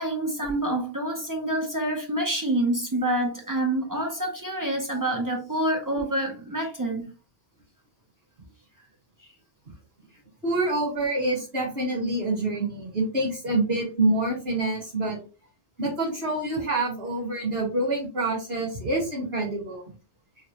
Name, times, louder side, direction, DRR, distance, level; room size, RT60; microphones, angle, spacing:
voice 1, 0.0-7.1, right 1 dB, 30° right, 0.4 m, -27 dB
voice 2, 10.4-15.2 15.8-19.8, right 2 dB, 70° right, 2.0 m, -26 dB
4.0 x 2.1 x 2.8 m
omnidirectional pair, 1.1 m